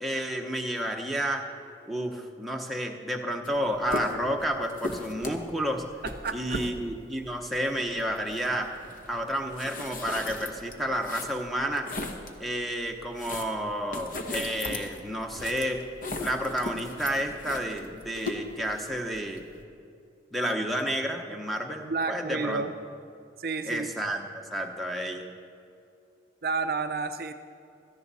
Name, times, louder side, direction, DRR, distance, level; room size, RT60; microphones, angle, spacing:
voice 1, 0.0-1.5 1.9-5.9 6.3-8.7 9.1-11.9 12.4-15.8 16.2-19.4 20.3-22.6 23.7-25.2, equal, ahead, 3 dB, 0.9 m, -31 dB
sound 1, 3.4-3.6 3.8-12.4 12.8-19.6, left 2 dB, 45° left, 1.0 m, -38 dB
voice 2, 6.0-6.7 21.8-22.7 23.4-23.9 26.4-27.3, right 4 dB, 50° right, 8 dB, 0.5 m, -31 dB
17.0 x 13.5 x 4.1 m, 2.5 s
head